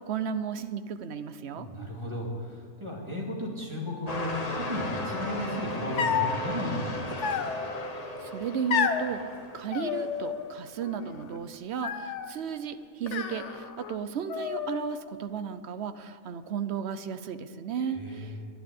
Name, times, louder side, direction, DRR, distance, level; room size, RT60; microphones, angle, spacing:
voice 1, 0.0-1.7 8.2-9.2 9.5-18.3, right 7 dB, 60° right, 11 dB, 0.9 m, -34 dB
voice 2, 1.5-7.4 17.8-18.4, left 1 dB, 20° right, -3 dB, 2.7 m, -35 dB
sound 1, 4.1-10.4 11.2-11.3, left 1 dB, 30° left, 1.1 m, -36 dB
sound 2, 6.0-6.4 7.2-7.9 8.7-9.1 9.7-10.5 10.8-11.4 11.8-12.4 13.1-14.0 14.3-15.0, left 7 dB, 65° left, 1.0 m, -31 dB
11.5 x 11.0 x 8.4 m, 2.2 s
omnidirectional pair, 1.4 m